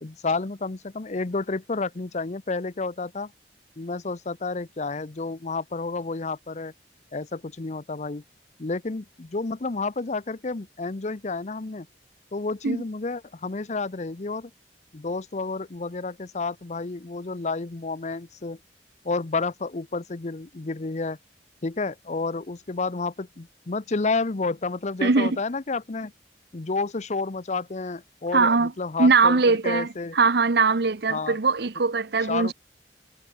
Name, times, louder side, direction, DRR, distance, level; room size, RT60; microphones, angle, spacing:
voice 1, 0.0-3.3 3.8-6.7 7.1-8.2 8.6-11.9 12.3-14.5 14.9-18.6 19.0-21.2 21.6-26.1 26.5-29.4 29.6-30.1 31.1-31.4 32.3-32.5, left 3 dB, 40° left, 0.7 m, -30 dB
voice 2, 25.0-25.4 28.3-28.7 29.0-32.5, right 4 dB, 65° right, 0.9 m, -21 dB
head